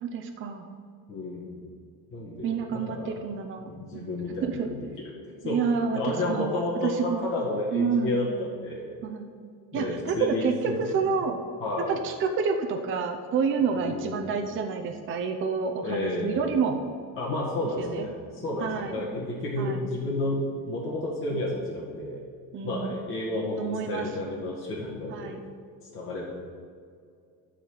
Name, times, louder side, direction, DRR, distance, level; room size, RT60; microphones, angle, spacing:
voice 1, 0.0-0.7 2.4-4.1 4.4-4.7 5.4-6.5 6.8-7.2 7.7-8.3 9.0-9.3 9.7-11.4 11.9-16.8 17.8-18.1 18.6-19.1 19.6-19.9 21.3-21.5 22.5-23.0 23.6-24.1 25.1-25.5, right 5 dB, 35° right, 4 dB, 0.7 m, -29 dB
voice 2, 1.1-1.6 2.1-3.2 3.6-5.1 5.4-5.6 5.9-8.9 9.7-10.8 11.6-11.9 13.7-14.3 15.8-16.5 17.2-22.2 22.6-23.6 23.9-25.4 25.9-26.3, left 2 dB, 35° left, -7 dB, 2.0 m, -31 dB
12.0 x 4.3 x 7.9 m, 2.2 s
cardioid pair, 160°, 37 cm